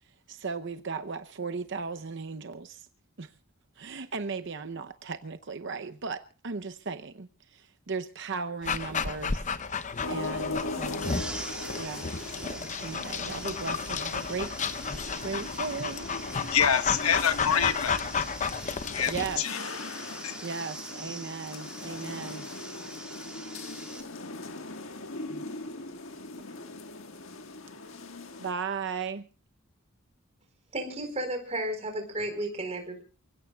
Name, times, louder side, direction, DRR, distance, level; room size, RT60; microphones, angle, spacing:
voice 1, 0.3-2.9 3.2-3.3 3.8-9.4 9.7-11.3 11.8-12.1 12.4-16.1 19.1-19.4 20.4-22.5 23.0-23.2 25.3-25.4 28.4-29.3, right 5 dB, 55° right, 0.8 m, -37 dB
Dog, 8.6-19.4, left 5 dB, 35° left, 0.7 m, -33 dB
sound 1, 10.0-28.5, left 3 dB, 65° left, 1.6 m, -40 dB
sound 2, 11.0-24.0, right 2 dB, 5° right, 2.7 m, -43 dB
voice 2, 16.5-18.0 18.9-19.6 20.2-20.4, left 8 dB, 85° left, 1.1 m, -26 dB
voice 3, 30.7-33.0, right 1 dB, 30° right, 4.4 m, -33 dB
28.5 x 16.5 x 2.3 m
head